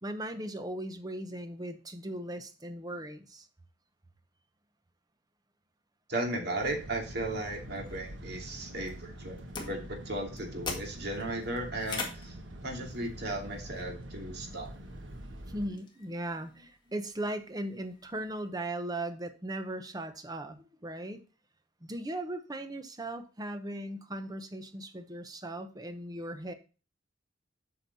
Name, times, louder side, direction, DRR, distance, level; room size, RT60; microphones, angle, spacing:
voice 1, 0.0-3.5 15.5-21.2 21.8-26.5, right 1 dB, 20° right, 9 dB, 0.9 m, -38 dB
voice 2, 6.1-9.4 9.7-12.3 12.6-14.8, right 1 dB, 60° right, 1 dB, 2.6 m, -36 dB
sound 1, 6.6-15.7, right 1 dB, 80° right, 1.2 m, -45 dB
sound 2, 7.3-18.5, left 3 dB, 25° left, 1.8 m, -46 dB
8.2 x 5.9 x 4.2 m, 0.35 s
head